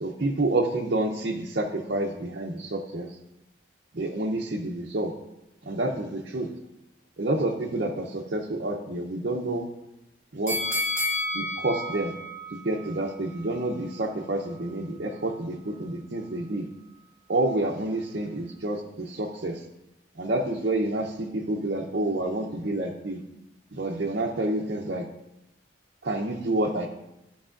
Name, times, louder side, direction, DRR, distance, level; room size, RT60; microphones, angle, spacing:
voice 1, 0.0-3.1 3.9-5.1 5.7-6.5 7.2-9.6 10.3-10.5 11.3-12.1 12.6-16.6 17.3-19.5 20.2-23.2 23.7-25.0 26.0-26.9, right 2 dB, 55° right, -2 dB, 0.7 m, -28 dB
sound 1, 10.5-13.6 14.0-14.1, left 1 dB, 10° right, 1.6 m, -31 dB
13.5 x 5.5 x 2.5 m, 0.88 s
head